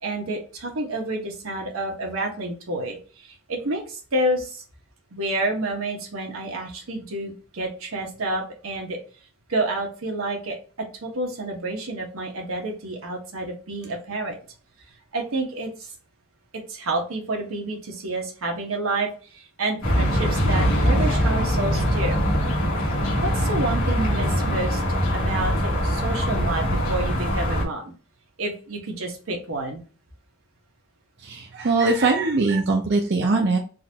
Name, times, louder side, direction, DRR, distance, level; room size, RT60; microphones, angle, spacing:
voice 1, 0.0-4.6 5.1-9.0 9.5-14.4 15.1-15.9 16.5-22.2 23.2-27.9 28.4-29.8, right 2 dB, 90° right, 1 dB, 1.1 m, -29 dB
sound 1, 19.8-27.6, equal, 85° left, 1.3 m, -22 dB
voice 2, 31.2-33.6, right 3 dB, 55° right, 1 dB, 0.5 m, -21 dB
3.9 x 2.5 x 2.8 m, 0.38 s
head